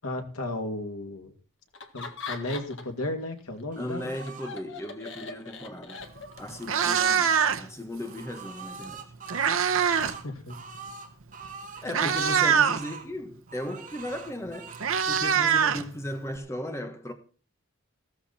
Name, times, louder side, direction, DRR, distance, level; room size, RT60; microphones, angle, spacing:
voice 1, 0.0-1.3 1.9-4.1 9.9-10.6 11.8-11.9, left 1 dB, 90° left, 2.7 m, -34 dB
Laughter, 1.7-3.0 3.4-6.6, left 4 dB, 60° left, 1.8 m, -41 dB
sound 1, 3.7-4.5 5.9-7.5 8.0-11.9 12.2-13.1 13.5-14.9 15.2-15.8, right 5 dB, 35° right, 2.8 m, -45 dB
voice 2, 3.8-6.0 6.4-9.1 11.8-14.8 15.1-17.1, left 1 dB, 15° left, 1.4 m, -36 dB
Meow, 6.0-6.2 6.5-7.8 8.9-10.2 10.5-10.8 11.5-11.6 11.9-12.8 14.1-14.2 14.5-16.4, right 7 dB, 75° right, 1.0 m, -24 dB
15.0 x 14.0 x 4.3 m
head